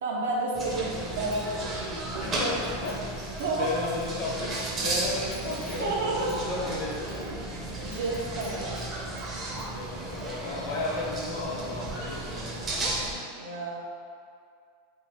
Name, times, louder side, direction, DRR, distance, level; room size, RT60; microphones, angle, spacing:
voice 1, 0.0-2.2 3.4-3.7 5.8-6.3 7.8-8.8 13.3-13.8, right 2 dB, 85° right, -2 dB, 0.5 m, -31 dB
sound 1, 0.5-13.2, right 2 dB, 25° right, 0.5 m, -34 dB
Wind chime, 1.1-1.9 2.3-4.6 4.9-5.0 5.3-9.3 9.6-10.3 10.6-10.7 11.0-11.5, left 2 dB, 85° left, 0.7 m, -53 dB
voice 2, 2.2-3.0 3.5-7.3 9.6-13.2, left 2 dB, 50° left, -5 dB, 0.8 m, -34 dB
2.5 x 2.2 x 3.3 m, 2.3 s
supercardioid pair, 130°, 0 cm